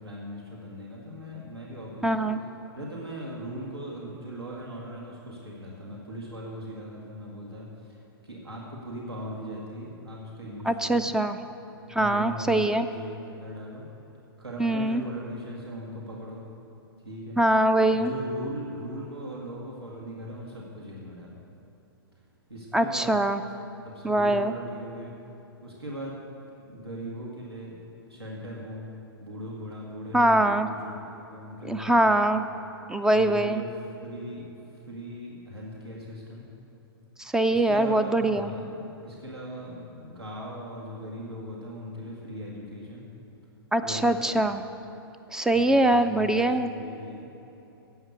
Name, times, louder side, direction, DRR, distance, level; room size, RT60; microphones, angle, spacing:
voice 1, 0.0-2.3 2.7-7.7 8.2-11.1 11.8-13.9 14.4-16.4 17.1-17.4 17.9-21.4 22.5-23.2 23.8-25.1 25.6-26.2 26.6-27.8 28.1-28.9 29.2-32.3 33.1-33.7 34.0-34.5 34.9-36.5 37.5-43.0 43.8-44.2 45.5-47.3, equal, 85° right, -4 dB, 2.1 m, -39 dB
voice 2, 2.0-2.4 10.6-11.4 11.9-12.9 14.6-15.0 17.4-18.1 22.7-23.4 24.0-24.5 30.1-30.7 31.7-32.5 32.9-33.6 37.2-38.5 43.7-44.6 45.3-46.7, right 1 dB, 5° right, 10 dB, 0.4 m, -23 dB
16.0 x 5.7 x 8.0 m, 3.0 s
figure-of-eight pair, 115°, 13 cm